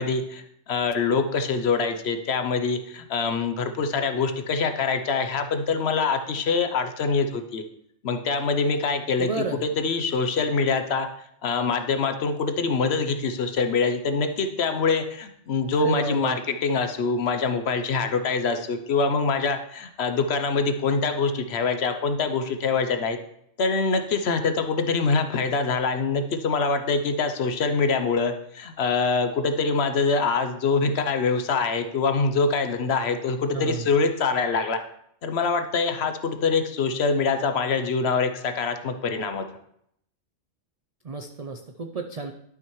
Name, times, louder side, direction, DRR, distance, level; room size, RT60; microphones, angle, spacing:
voice 1, 0.0-7.6 8.0-9.3 9.8-11.1 11.4-16.4 16.6-23.2 23.6-34.8 35.2-39.4, left 4 dB, 60° left, 7 dB, 0.9 m, -24 dB
voice 2, 9.2-9.6 15.8-16.4 33.5-33.9 41.0-42.3, right 4 dB, 65° right, 5 dB, 0.3 m, -31 dB
11.5 x 5.9 x 3.1 m, 0.72 s
omnidirectional pair, 1.4 m